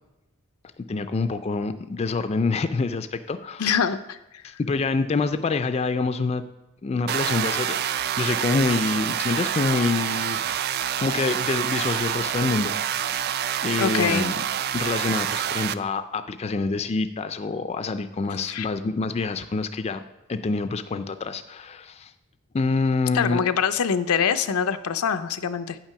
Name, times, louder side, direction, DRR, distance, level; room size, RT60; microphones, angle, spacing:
voice 1, 0.9-3.6 4.4-6.4 6.8-10.4 11.0-13.3 13.6-14.4 14.7-20.0 20.3-22.1 22.5-23.4, left 3 dB, 30° left, 10 dB, 0.3 m, -26 dB
voice 2, 3.6-4.2 13.8-14.3 18.5-18.7 23.1-25.8, left 7 dB, 90° left, 10 dB, 0.5 m, -24 dB
sound 1, 7.1-15.7, right 10 dB, 45° right, 0.3 m, -27 dB
9.1 x 5.9 x 5.7 m, 0.97 s
head